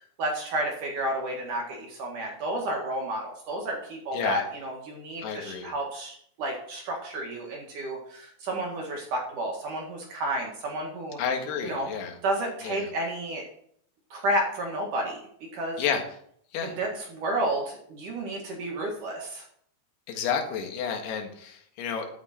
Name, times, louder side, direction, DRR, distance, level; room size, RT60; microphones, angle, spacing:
voice 1, 0.2-11.2 11.6-11.9 12.2-13.4 14.1-15.8 16.6-19.4, right 1 dB, 55° right, 0 dB, 2.7 m, -31 dB
voice 2, 5.2-5.7 11.2-12.2 12.6-12.9 15.8-16.0 16.5-16.8 20.1-22.1, left 6 dB, 65° left, 3 dB, 3.4 m, -30 dB
12.5 x 8.9 x 4.4 m, 0.65 s
omnidirectional pair, 5.6 m